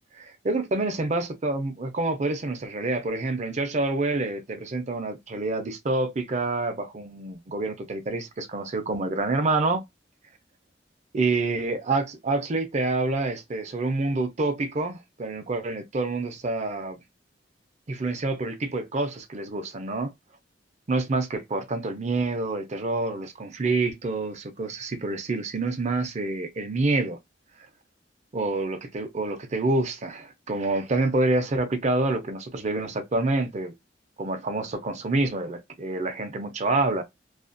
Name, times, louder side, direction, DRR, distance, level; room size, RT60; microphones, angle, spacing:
voice 1, 0.1-9.8 11.1-17.0 17.9-20.1 20.9-27.2 28.3-33.7 34.2-37.0, right 2 dB, 40° right, 0.5 m, -27 dB
2.4 x 2.1 x 2.5 m
head